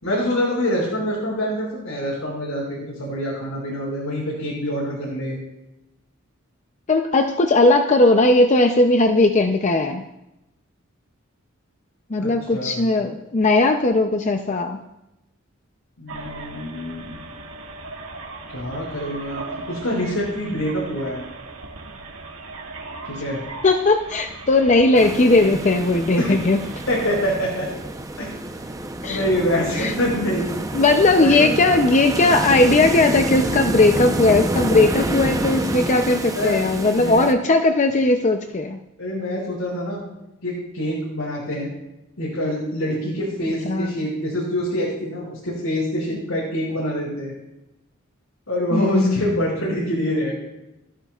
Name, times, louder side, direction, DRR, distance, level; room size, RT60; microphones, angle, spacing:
voice 1, 0.0-5.4 12.2-12.9 16.0-17.2 18.5-21.2 23.1-23.4 26.2-26.4 26.9-27.7 28.2-28.4 29.1-30.5 31.2-31.5 36.3-37.4 39.0-40.0 40.4-41.7 42.2-47.3 48.5-50.3, equal, 80° left, -5 dB, 5.9 m, -25 dB
voice 2, 6.9-10.0 12.1-14.8 23.6-26.6 29.0-29.2 29.8-29.9 30.7-38.8 43.7-43.9 48.7-49.3, left 2 dB, 35° left, 5 dB, 0.6 m, -18 dB
sound 1, 16.1-27.1, right 3 dB, 90° right, 1.9 m, -38 dB
sound 2, 24.9-37.3, right 1 dB, 15° right, 0.8 m, -28 dB
29.5 x 11.0 x 2.4 m, 0.93 s
head